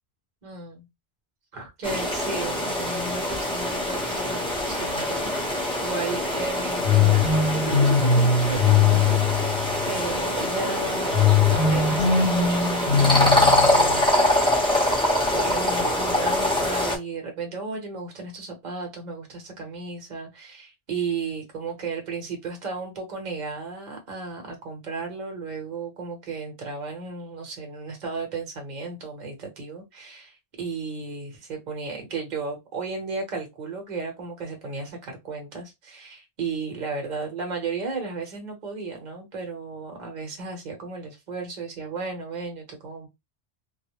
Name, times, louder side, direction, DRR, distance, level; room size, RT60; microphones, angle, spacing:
voice 1, 0.4-0.9 1.5-14.3 14.9-15.0 15.3-43.1, right 4 dB, 45° right, 0.9 m, -34 dB
sound 1, 1.8-17.0, left 1 dB, 5° left, 0.7 m, -24 dB
sound 2, 6.8-10.0 11.1-14.1, left 6 dB, 70° left, 0.9 m, -21 dB
2.3 x 2.0 x 2.9 m
omnidirectional pair, 1.2 m